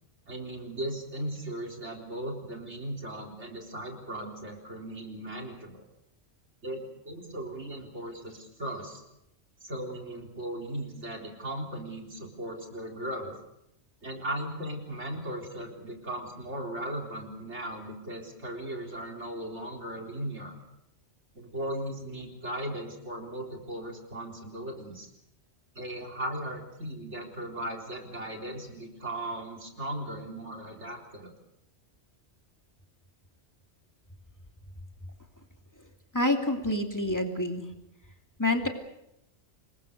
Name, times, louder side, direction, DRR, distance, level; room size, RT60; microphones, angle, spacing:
voice 1, 0.3-5.9 6.6-9.0 9.6-13.4 14.0-20.6 21.3-25.1 25.8-31.3, right 1 dB, 75° right, 1 dB, 4.3 m, -37 dB
voice 2, 36.1-37.7 38.4-38.7, left 1 dB, 15° left, 3 dB, 2.6 m, -27 dB
27.0 x 21.5 x 6.7 m, 0.84 s
omnidirectional pair, 1.2 m